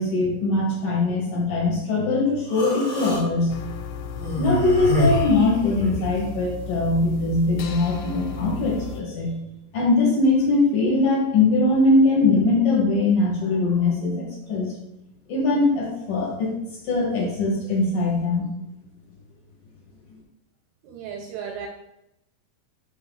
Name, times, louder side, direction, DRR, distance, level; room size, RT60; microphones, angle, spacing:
voice 1, 0.0-3.6 4.4-9.4 9.7-14.7 15.3-16.5 16.8-18.5, left 2 dB, 65° left, -3 dB, 2.4 m, -21 dB
Human voice, 2.5-3.2 4.1-6.1, left 1 dB, 40° left, 1.6 m, -26 dB
sound 1, 3.5-9.0, left 6 dB, 85° left, 2.8 m, -35 dB
voice 2, 20.8-21.7, right 7 dB, 80° right, 3 dB, 2.3 m, -34 dB
6.1 x 5.7 x 3.6 m, 0.86 s
omnidirectional pair, 4.9 m